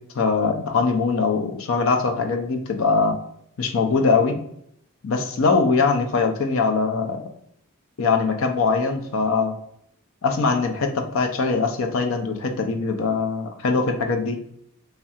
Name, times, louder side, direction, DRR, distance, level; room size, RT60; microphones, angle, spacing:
voice 1, 0.1-3.2 3.6-4.4 5.0-7.2 8.0-9.5 10.2-14.4, left 4 dB, 65° left, 5 dB, 0.5 m, -22 dB
3.2 x 2.4 x 2.7 m, 0.73 s
head